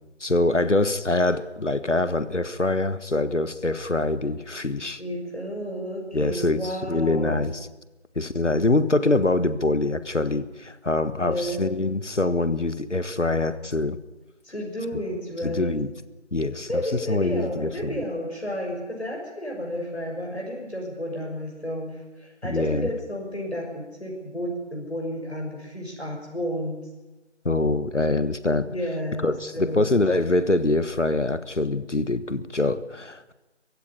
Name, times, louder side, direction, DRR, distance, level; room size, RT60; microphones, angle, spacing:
voice 1, 0.2-5.0 6.1-7.7 8.1-14.0 15.4-15.9 16.3-16.8 17.1-18.0 22.4-22.9 27.4-28.7 29.2-33.3, left 2 dB, 80° left, 14 dB, 1.5 m, -24 dB
voice 2, 5.0-7.4 11.1-11.6 14.4-15.7 16.7-26.8 28.6-29.9, equal, 65° left, -1 dB, 6.1 m, -32 dB
19.5 x 16.0 x 9.7 m, 1.1 s
figure-of-eight pair, 180°, 35 cm